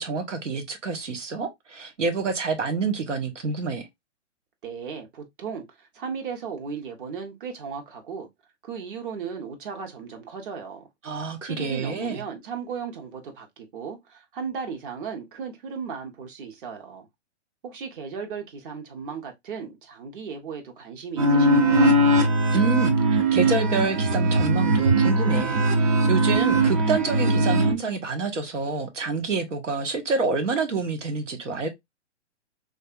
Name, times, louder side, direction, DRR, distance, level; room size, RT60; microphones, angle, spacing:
voice 1, 0.0-3.9 11.0-12.2 22.5-23.0 23.3-31.7, right 4 dB, 90° right, 1.1 m, -27 dB
voice 2, 4.6-8.3 8.6-10.9 11.4-17.1 17.6-22.0, right 6 dB, 45° right, 1.1 m, -36 dB
sound 1, 21.2-27.7, right 2 dB, 30° right, 0.4 m, -20 dB
3.4 x 2.6 x 2.3 m
hypercardioid pair, 135°, 36 cm